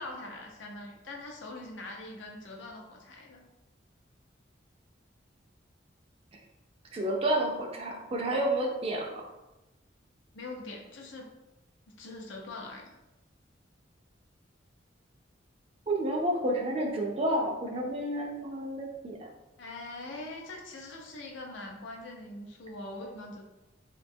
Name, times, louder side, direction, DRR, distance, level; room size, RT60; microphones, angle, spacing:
voice 1, 0.0-3.4 10.3-11.3 12.0-12.9 19.6-23.4, left 2 dB, 75° left, 0 dB, 0.5 m, -42 dB
voice 2, 6.9-9.2 15.9-19.3, right 1 dB, 30° right, 0 dB, 0.4 m, -30 dB
2.7 x 2.2 x 2.6 m, 0.99 s
head